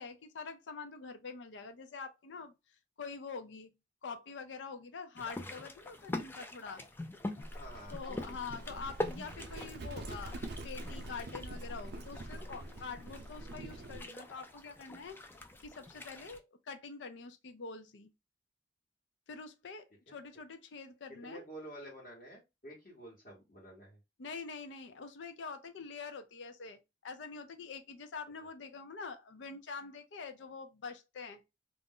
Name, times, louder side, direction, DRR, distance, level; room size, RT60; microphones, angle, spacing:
voice 1, 0.0-2.5 3.0-3.7 4.0-6.8 7.9-15.2 15.6-18.1 19.3-21.4 24.2-31.4, left 4 dB, 90° left, 0.5 m, -45 dB
sound 1, 5.2-16.4, left 1 dB, 10° left, 0.3 m, -44 dB
Livestock farm animals working animals, 7.4-14.1, right 1 dB, 60° right, 0.5 m, -45 dB
voice 2, 7.5-8.4 20.1-20.2 21.2-24.0, right 1 dB, 50° left, 1.1 m, -50 dB
2.4 x 2.0 x 3.6 m
head